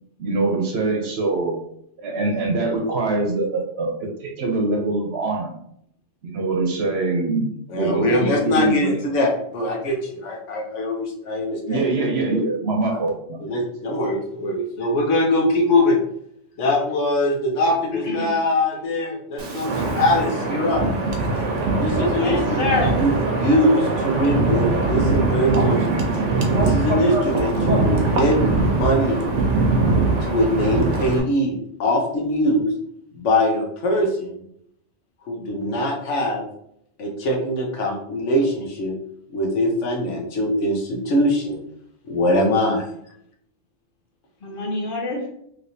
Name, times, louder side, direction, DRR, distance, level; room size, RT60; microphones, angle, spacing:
voice 1, 0.2-1.5 2.0-3.9 4.2-5.5 6.2-8.9 11.7-13.4, right 3 dB, 65° right, 1 dB, 0.9 m, -23 dB
voice 2, 7.7-11.8 12.9-13.0 13.4-16.0 16.6-20.8 21.8-26.0 26.6-28.4 28.6-29.2 30.2-32.7 33.1-34.4 35.3-36.5 37.0-38.9 39.3-41.6 42.1-42.9, left 1 dB, 75° left, 0 dB, 1.1 m, -22 dB
voice 3, 18.0-18.4 22.1-23.0 44.4-45.3, left 2 dB, 55° left, 0 dB, 0.8 m, -26 dB
Wind, 19.4-31.2, right 3 dB, 85° right, 1.0 m, -21 dB
3.2 x 2.8 x 2.7 m, 0.71 s
omnidirectional pair, 1.2 m